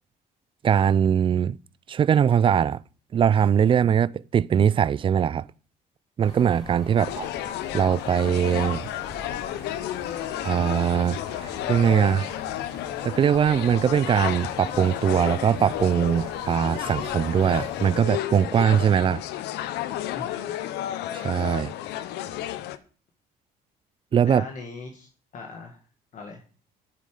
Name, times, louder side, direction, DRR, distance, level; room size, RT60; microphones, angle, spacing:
voice 1, 0.6-1.6 1.9-2.8 3.1-5.5 6.2-7.3 7.7-8.8 10.4-12.3 13.0-19.2 21.1-21.7 24.1-24.4, right 8 dB, 30° right, 0.3 m, -21 dB
sound 1, 6.2-18.0, left 1 dB, 25° left, 4.0 m, -43 dB
sound 2, 7.0-22.8, left 13 dB, 85° left, 0.7 m, -32 dB
voice 2, 20.1-20.6 24.2-25.1 25.3-25.8 26.1-26.4, left 4 dB, 50° left, 1.7 m, -39 dB
9.4 x 7.3 x 5.0 m
cardioid pair, 110°, 17 cm